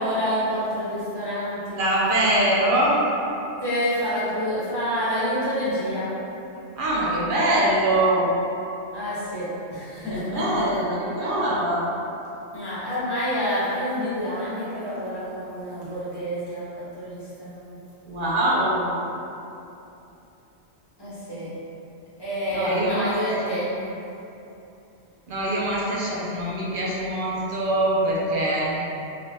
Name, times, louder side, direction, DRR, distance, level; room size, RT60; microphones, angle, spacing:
voice 1, 0.0-1.8 3.6-6.1 8.9-10.2 12.5-17.8 21.0-21.5 22.2-23.7, equal, 25° left, -11 dB, 1.1 m, -28 dB
voice 2, 1.8-3.0 6.8-8.3 10.1-11.8 18.1-18.9 22.5-23.4 25.3-28.8, right 1 dB, 55° right, -5 dB, 0.8 m, -23 dB
3.3 x 2.9 x 2.9 m, 2.9 s
omnidirectional pair, 1.1 m